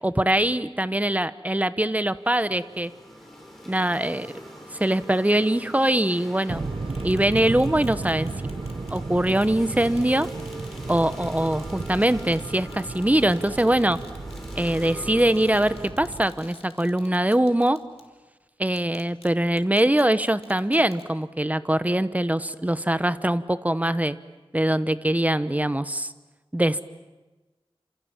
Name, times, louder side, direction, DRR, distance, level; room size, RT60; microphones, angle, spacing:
voice 1, 0.0-2.9 3.7-4.3 4.7-6.6 7.0-8.3 8.9-10.3 10.9-14.0 14.6-17.8 18.6-24.2 24.5-26.1 26.5-26.8, right 1 dB, 15° right, 14 dB, 1.0 m, -23 dB
sound 1, 2.1-15.9, equal, ahead, 7.0 m, -43 dB
sound 2, 6.5-16.2, right 3 dB, 65° right, 1.1 m, -34 dB
sound 3, 6.9-9.0 9.4-9.5 9.9-18.1 18.7-19.3 19.6-21.0, left 3 dB, 85° left, 2.9 m, -51 dB
29.0 x 27.0 x 7.4 m, 1.2 s
wide cardioid pair, 65°, 10 cm